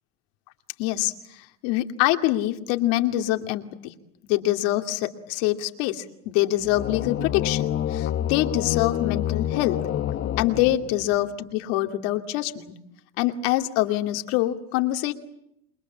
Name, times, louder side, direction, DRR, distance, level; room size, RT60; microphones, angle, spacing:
voice 1, 0.8-1.1 1.6-3.9 4.3-9.8 10.4-11.3 11.5-12.7 13.2-15.1, left 15 dB, 70° left, 6 dB, 2.5 m, -25 dB
sound 1, 6.6-11.3, left 11 dB, 40° left, 1.4 m, -28 dB
28.0 x 22.0 x 8.6 m, 0.80 s
supercardioid pair, 110°, 33 cm